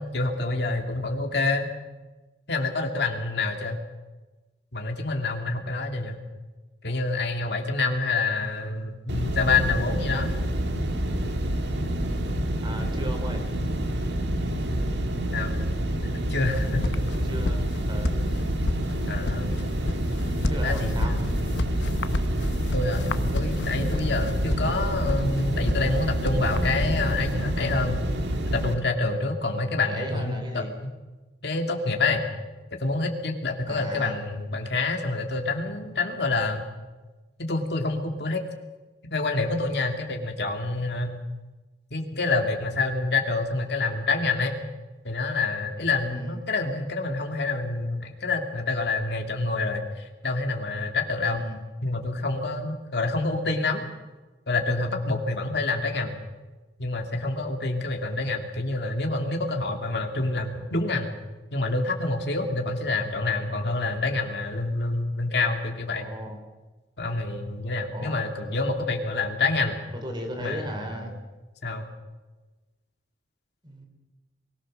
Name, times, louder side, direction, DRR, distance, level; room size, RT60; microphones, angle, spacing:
voice 1, 0.0-1.7 2.5-3.8 4.7-6.2 6.8-10.3 15.3-15.6 16.3-16.9 19.1-19.5 20.6-21.2 22.7-23.1 23.3-28.0 28.5-30.6 31.4-32.3 32.8-36.7 37.4-38.4 39.1-41.2 41.9-44.6 45.0-51.5 51.8-53.9 54.5-56.2 56.8-61.1 61.5-66.1 67.0-69.8 70.4-71.1 71.6-71.9, left 3 dB, 65° left, 3 dB, 2.5 m, -27 dB
sound 1, 9.1-28.7, right 1 dB, 70° right, 1.8 m, -28 dB
voice 2, 12.6-13.4 17.2-17.6 17.9-18.2 20.5-21.2 29.9-30.7 33.7-34.2 46.0-46.4 51.3-51.6 65.9-66.4 67.9-68.3 69.1-69.2 69.9-71.1 73.6-73.9, equal, 25° right, 5 dB, 3.4 m, -37 dB
sound 2, 16.4-27.3, left 2 dB, 85° left, 0.9 m, -31 dB
23.5 x 17.5 x 6.5 m, 1.2 s
head